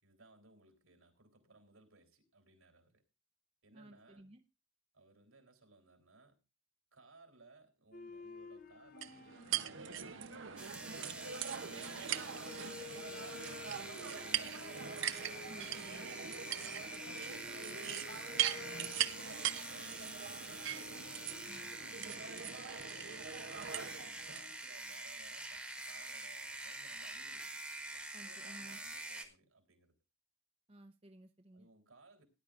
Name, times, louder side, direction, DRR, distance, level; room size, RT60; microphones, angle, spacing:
voice 1, 0.0-3.0 3.6-4.3 4.9-6.4 6.9-14.9 15.7-16.3 17.0-19.3 19.7-21.2 21.8-22.9 23.3-27.6 27.9-30.0 31.5-32.2, right 3 dB, 90° right, 3.5 m, -63 dB
voice 2, 3.7-4.4 15.5-16.3 21.5-22.6 28.1-28.8 30.7-31.7, right 1 dB, 30° right, 0.7 m, -56 dB
sound 1, 7.9-24.6, left 4 dB, 45° left, 0.8 m, -54 dB
sound 2, 9.0-24.4, right 10 dB, 65° right, 0.7 m, -41 dB
sound 3, 10.6-29.2, right 2 dB, 5° right, 1.3 m, -46 dB
18.5 x 11.0 x 2.5 m
head